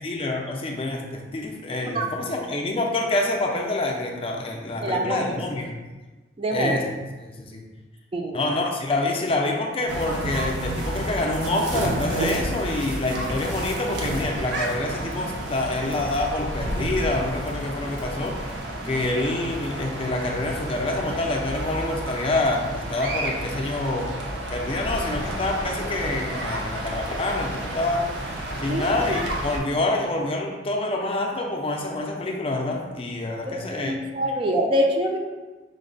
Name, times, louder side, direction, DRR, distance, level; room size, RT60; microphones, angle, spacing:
voice 1, 0.0-5.8 6.5-6.8 7.2-7.6 8.3-18.5 18.8-24.1 24.5-28.3 28.6-34.0, left 2 dB, 30° left, 1 dB, 0.4 m, -27 dB
voice 2, 4.8-5.3 6.4-6.8 8.1-8.4 28.7-28.8 33.5-35.2, right 1 dB, 30° right, 1 dB, 0.4 m, -25 dB
sound 1, 9.9-29.6, right 1 dB, 70° right, 0.6 m, -31 dB
5.1 x 2.1 x 3.8 m, 1.2 s
head